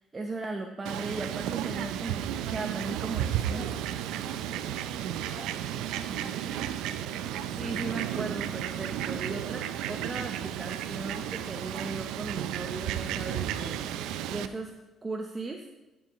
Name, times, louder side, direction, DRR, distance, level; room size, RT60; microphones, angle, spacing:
voice 1, 0.1-3.6 7.5-13.8 14.3-14.7 15.0-15.6, right 3 dB, 25° right, 2 dB, 0.8 m, -37 dB
Fowl, 0.8-14.5, right 10 dB, 85° right, 0.4 m, -33 dB
voice 2, 3.1-6.4, left 2 dB, 65° left, -7 dB, 2.2 m, -51 dB
12.0 x 7.1 x 3.1 m, 1.0 s
cardioid pair, 100°, 0 cm